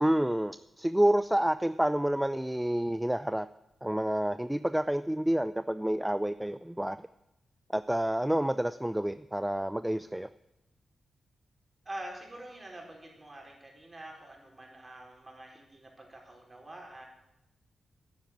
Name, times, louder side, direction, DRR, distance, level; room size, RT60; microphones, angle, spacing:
voice 1, 0.0-3.5 3.8-7.0 7.7-10.3, right 1 dB, 5° right, 13 dB, 0.4 m, -29 dB
voice 2, 11.8-17.0, right 1 dB, 25° right, 0 dB, 4.4 m, -46 dB
10.5 x 9.6 x 9.2 m, 0.89 s
cardioid pair, 85°, 0 cm